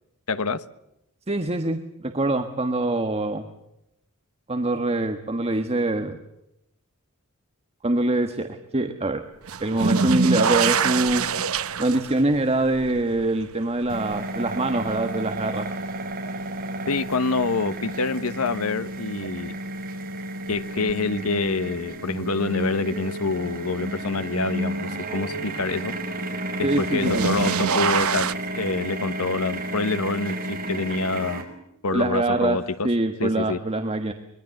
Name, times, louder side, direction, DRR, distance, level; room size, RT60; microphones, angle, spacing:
voice 1, 0.3-0.6 16.9-19.6 20.5-25.9 26.6-31.4 31.8-32.9 33.2-33.6, left 3 dB, 80° left, 13 dB, 1.2 m, -26 dB
voice 2, 1.3-3.5 4.5-6.2 7.8-9.2 9.6-11.3 11.8-15.7 26.6-27.3 31.9-32.6 32.8-34.1, right 2 dB, 30° right, 6 dB, 1.4 m, -24 dB
sound 1, 9.5-16.5 16.9-17.6 19.2-19.3 20.9-21.0 26.7-28.3, right 5 dB, 70° right, 1.0 m, -26 dB
sound 2, 13.9-31.4, right 1 dB, 45° right, 5.9 m, -32 dB
24.5 x 22.0 x 7.8 m, 0.86 s
head